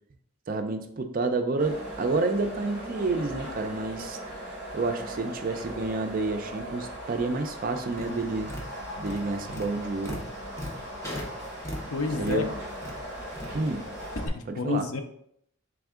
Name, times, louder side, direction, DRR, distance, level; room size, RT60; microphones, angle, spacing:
voice 1, 0.5-4.2 4.7-8.5 9.0-10.2 12.2-12.5 13.5-13.8 14.5-14.9, right 3 dB, 40° right, 6 dB, 0.4 m, -29 dB
sound 1, 1.6-14.3, right 1 dB, 10° right, 1.2 m, -39 dB
Tap, 7.9-14.3, left 1 dB, 15° left, 0.6 m, -40 dB
voice 2, 11.9-12.4 14.2-15.0, left 4 dB, 75° left, 7 dB, 0.5 m, -29 dB
3.5 x 3.4 x 3.6 m, 0.71 s
head